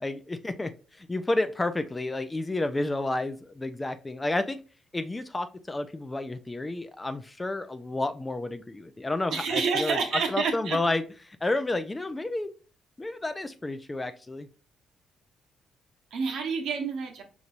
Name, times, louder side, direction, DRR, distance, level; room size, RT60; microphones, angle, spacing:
voice 1, 0.0-4.6 4.9-12.5 13.0-14.5, left 2 dB, 20° left, 10 dB, 0.4 m, -31 dB
voice 2, 9.3-10.8 16.1-17.2, right 5 dB, 75° right, 2 dB, 1.1 m, -28 dB
5.2 x 3.0 x 2.5 m, 0.36 s
cardioid pair, 90°, 0 cm